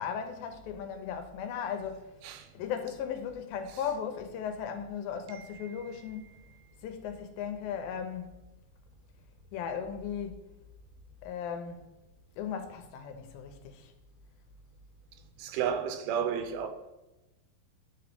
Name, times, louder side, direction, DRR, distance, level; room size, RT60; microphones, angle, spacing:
voice 1, 0.0-2.1 2.5-6.4 6.8-8.3 9.5-10.4 11.2-11.8 12.4-13.9, left 7 dB, 85° left, 2.4 m, -37 dB
voice 2, 5.3-5.7 15.4-16.7, right 8 dB, 85° right, 2.5 m, -32 dB
9.0 x 3.9 x 3.4 m
omnidirectional pair, 4.2 m